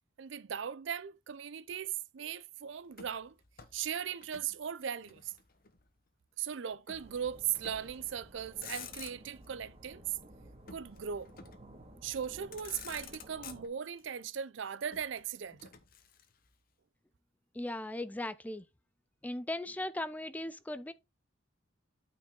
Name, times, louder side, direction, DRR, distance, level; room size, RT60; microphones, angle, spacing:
voice 1, 0.2-3.4 3.7-5.3 6.4-10.2 10.7-11.3 12.0-15.7, right 8 dB, 65° right, 0.5 m, -38 dB
Motor vehicle (road), 2.9-4.5 4.8-5.9 6.9-7.1 7.5-8.0 8.4-9.5 10.7-11.7 12.2-12.3 12.5-14.0 14.9-16.5, left 7 dB, 45° left, 1.0 m, -50 dB
sound 1, 6.9-13.7, right 1 dB, 30° right, 1.6 m, -55 dB
voice 2, 17.5-18.7 19.2-20.9, left 1 dB, 10° left, 0.4 m, -38 dB
9.1 x 4.8 x 3.7 m
head